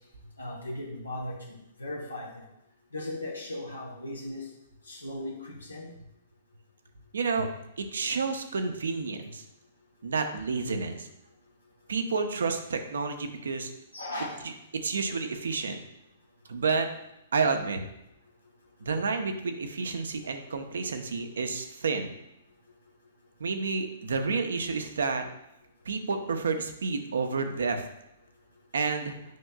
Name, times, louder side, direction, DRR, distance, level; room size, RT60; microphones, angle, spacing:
voice 1, 0.4-1.5 1.8-2.4 2.9-4.5 4.9-5.9 13.9-14.4, left 1 dB, 80° left, -1 dB, 1.0 m, -37 dB
voice 2, 7.1-7.5 7.8-9.4 10.0-11.1 11.9-13.7 14.4-15.8 16.5-16.9 17.3-17.8 18.8-22.1 23.4-25.2 25.8-27.9 28.7-29.2, right 4 dB, 65° right, 6 dB, 0.8 m, -30 dB
9.4 x 5.4 x 2.3 m, 0.84 s
figure-of-eight pair, 110°, 0 cm